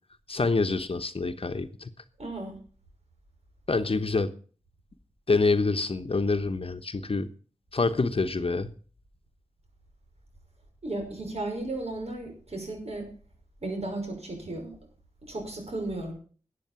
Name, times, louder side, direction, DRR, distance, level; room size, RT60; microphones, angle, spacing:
voice 1, 0.3-1.9 3.7-4.3 5.3-7.3 7.7-8.7, left 3 dB, 50° left, 10 dB, 1.1 m, -26 dB
voice 2, 2.2-2.6 10.8-13.1 13.6-14.7 15.3-16.1, right 2 dB, 60° right, 2 dB, 5.9 m, -34 dB
12.5 x 8.6 x 7.1 m, 0.41 s
cardioid pair, 55°, 12 cm